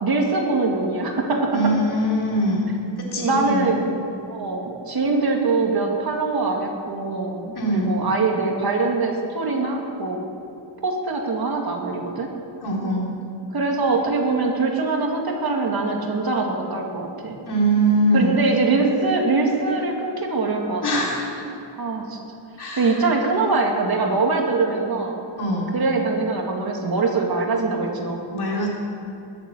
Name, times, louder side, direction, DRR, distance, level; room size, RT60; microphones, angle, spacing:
voice 1, 0.0-1.6 3.2-3.9 4.3-10.2 10.8-12.3 13.5-17.4 18.1-21.1 21.8-22.2 22.8-25.2 25.7-28.2, right 3 dB, 50° right, 1 dB, 2.2 m, -23 dB
voice 2, 1.5-2.7 3.0-3.7 7.5-7.9 12.6-13.1 17.5-18.4 20.8-21.4 22.6-23.1 25.3-25.8 28.3-28.7, right 1 dB, 55° left, -3 dB, 3.8 m, -22 dB
21.0 x 7.5 x 7.9 m, 2.7 s
wide cardioid pair, 145°, 45 cm